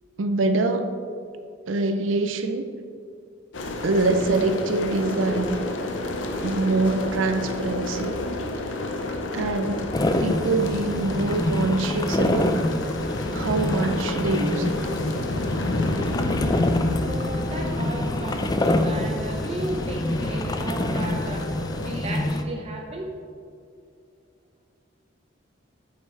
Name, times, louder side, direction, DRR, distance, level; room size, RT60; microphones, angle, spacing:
voice 1, 0.2-1.0 1.7-2.7 3.8-5.6 6.4-8.2 9.3-12.6 13.3-14.7, right 2 dB, 85° right, 8 dB, 0.5 m, -24 dB
sound 1, 3.5-22.0, left 2 dB, 75° left, 0.8 m, -30 dB
sound 2, 9.9-22.4, left 1 dB, 20° left, 0.4 m, -27 dB
voice 2, 17.0-23.1, right 2 dB, 35° right, 0 dB, 0.6 m, -34 dB
8.3 x 8.1 x 3.2 m, 2.4 s
head